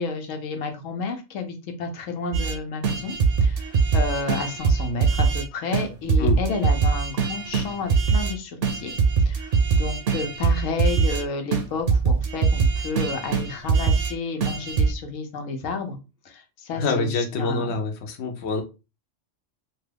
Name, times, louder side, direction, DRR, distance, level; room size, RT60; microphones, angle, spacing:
voice 1, 0.0-8.9 9.2-16.0 16.2-17.7, left 4 dB, 90° left, 4 dB, 1.1 m, -31 dB
sound 1, 2.3-2.6 2.8-5.4 5.7-5.8 6.1-8.3 8.6-11.2 11.5-14.1 14.4-14.9, right 5 dB, 60° right, 0.7 m, -22 dB
voice 2, 16.8-18.6, left 3 dB, 65° left, 4 dB, 0.9 m, -26 dB
2.9 x 2.3 x 3.2 m, 0.28 s
omnidirectional pair, 1.3 m